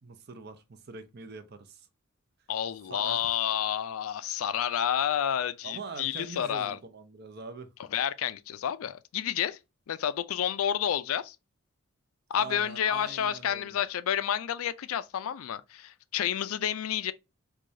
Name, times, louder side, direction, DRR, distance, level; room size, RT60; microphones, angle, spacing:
voice 1, 0.0-1.9 2.9-3.2 5.6-7.7 12.4-13.8, right 4 dB, 50° right, 0.6 m, -43 dB
voice 2, 2.5-6.8 7.9-9.6 9.9-11.4 12.3-17.1, left 9 dB, 80° left, 0.4 m, -30 dB
4.6 x 2.3 x 2.6 m
head